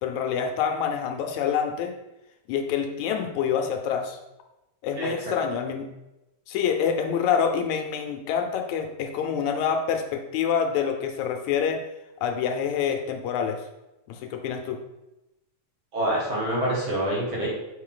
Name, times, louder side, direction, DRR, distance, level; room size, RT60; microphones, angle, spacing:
voice 1, 0.0-1.9 2.5-4.2 4.8-5.9 6.5-11.8 12.2-13.6 14.1-14.8, left 7 dB, 80° left, 4 dB, 1.9 m, -26 dB
voice 2, 15.9-17.5, right 1 dB, 45° right, -5 dB, 2.1 m, -26 dB
6.3 x 4.0 x 3.8 m, 0.95 s
omnidirectional pair, 3.5 m